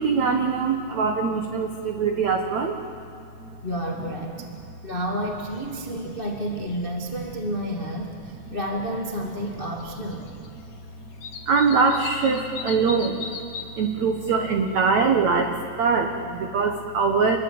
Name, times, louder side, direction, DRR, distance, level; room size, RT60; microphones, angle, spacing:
voice 1, 0.0-2.8 3.4-3.6 8.5-8.6 10.7-10.8 11.0-11.1 11.5-13.3 13.8-17.4, right 5 dB, 85° right, 4 dB, 1.5 m, -23 dB
voice 2, 3.6-4.5 4.8-10.3, equal, 90° left, 1 dB, 0.4 m, -30 dB
sound 1, 5.4-5.9 6.1-7.3 8.8-8.9 9.5-10.5 10.7-10.8 11.2-13.6, left 5 dB, 55° left, 2.1 m, -38 dB
28.0 x 22.0 x 8.8 m, 2.5 s
omnidirectional pair, 5.3 m